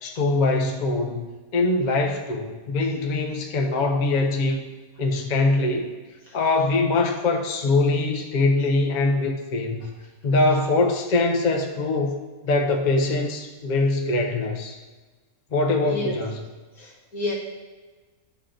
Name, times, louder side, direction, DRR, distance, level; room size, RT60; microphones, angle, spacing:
voice 1, 0.0-1.2 1.5-4.6 5.0-5.9 6.3-9.9 10.2-12.2 12.4-14.8 15.5-16.4, left 2 dB, 45° left, 3 dB, 0.6 m, -23 dB
voice 2, 15.8-16.1 16.8-17.3, left 2 dB, 75° left, -4 dB, 2.2 m, -30 dB
11.0 x 4.1 x 3.8 m, 1.3 s
omnidirectional pair, 1.5 m